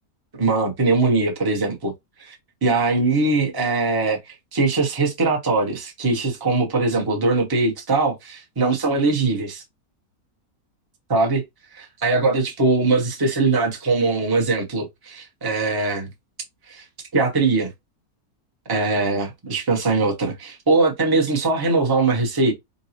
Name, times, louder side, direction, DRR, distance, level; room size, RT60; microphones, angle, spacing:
voice 1, 0.4-1.9 2.2-2.3 2.6-9.6 11.1-11.4 11.8-16.1 16.7-16.8 17.1-17.7 18.7-22.5, right 3 dB, 20° right, 0.7 m, -21 dB
3.8 x 2.3 x 2.8 m
omnidirectional pair, 1.6 m